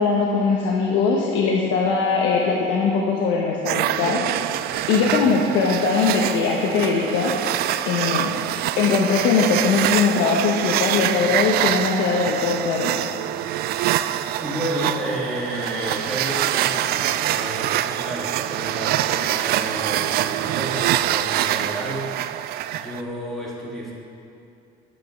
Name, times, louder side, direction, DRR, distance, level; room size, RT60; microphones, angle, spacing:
voice 1, 0.0-4.2 4.9-7.4 7.9-8.3 8.8-12.9, left 5 dB, 65° left, -2 dB, 1.3 m, -21 dB
sound 1, 3.7-23.0, right 12 dB, 50° right, 0.4 m, -25 dB
voice 2, 5.0-5.4 13.9-22.3 22.8-23.9, right 1 dB, ahead, -7 dB, 2.1 m, -31 dB
11.0 x 9.4 x 5.3 m, 2.6 s
cardioid pair, 140°, 21 cm